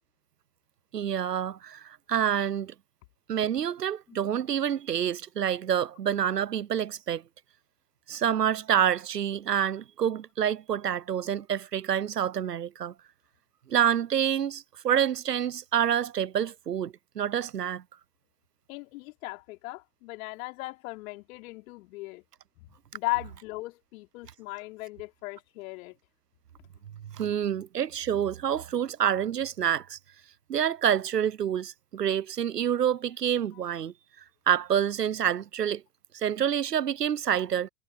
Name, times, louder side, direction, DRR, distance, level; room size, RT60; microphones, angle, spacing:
voice 1, 0.9-2.7 3.3-7.2 8.1-12.9 13.7-17.8 27.2-30.0 30.5-33.9 34.5-35.8 36.2-37.7, right 9 dB, 85° right, 0.9 m, -27 dB
voice 2, 18.7-22.2 22.6-22.7 22.9-26.0, left 24 dB, 60° left, 3.3 m, -37 dB
figure-of-eight pair, 80°, 47 cm